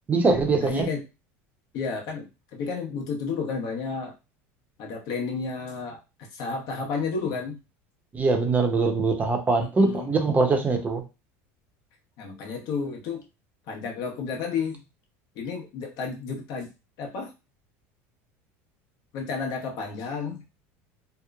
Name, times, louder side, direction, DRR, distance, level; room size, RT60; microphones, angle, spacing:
voice 1, 0.1-0.9 8.1-11.0, right 3 dB, 20° right, 4 dB, 0.6 m, -22 dB
voice 2, 0.6-1.0 1.7-4.1 4.8-6.0 6.3-7.6 9.6-10.1 12.2-13.3 13.7-14.8 15.3-16.7 17.0-17.3 19.1-20.6, left 5 dB, 60° left, 1 dB, 0.9 m, -32 dB
2.9 x 2.0 x 2.3 m, 0.27 s
supercardioid pair, 120°, 8 cm